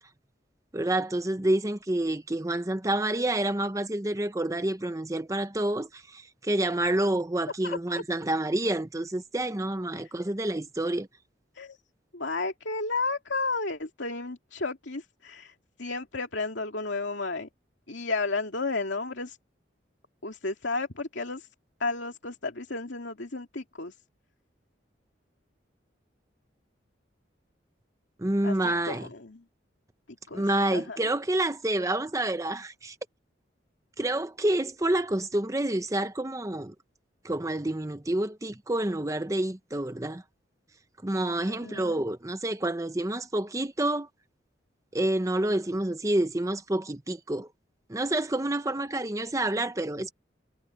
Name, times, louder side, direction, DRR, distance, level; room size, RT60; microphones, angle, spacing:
voice 1, 0.7-11.1 28.2-29.1 30.3-33.0 34.0-36.7 37.2-40.2 41.0-44.1 44.9-47.5 47.9-50.1, right 1 dB, 15° right, 0.7 m, -28 dB
voice 2, 7.6-8.0 9.9-10.0 11.5-11.8 12.1-17.5 17.9-19.4 20.2-21.5 21.8-23.9 28.4-29.4 30.3-31.0 41.5-42.0, left 3 dB, 85° left, 2.4 m, -33 dB
head